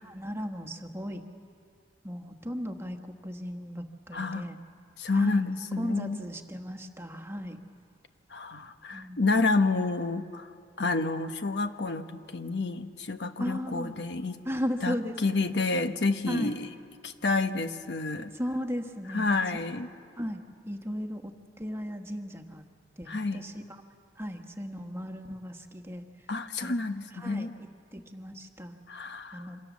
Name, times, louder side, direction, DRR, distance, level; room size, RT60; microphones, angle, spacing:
voice 1, 0.0-1.2 2.0-4.6 5.1-7.6 8.9-9.2 13.4-13.9 14.4-15.2 16.3-16.6 18.3-19.3 19.5-19.6 20.2-20.4 20.7-21.3 21.6-22.6 23.0-23.8 24.2-26.0 26.6-26.7 27.1-28.8 29.3-29.6, equal, 15° right, 5 dB, 1.3 m, -36 dB
voice 2, 4.1-4.4 5.0-6.2 8.3-10.5 10.8-14.4 14.8-14.9 15.2-16.7 17.0-18.3 19.1-19.9 23.1-23.4 26.3-27.5 28.9-29.4, left 3 dB, 70° left, 8 dB, 1.1 m, -29 dB
27.5 x 26.0 x 7.3 m, 2.3 s
head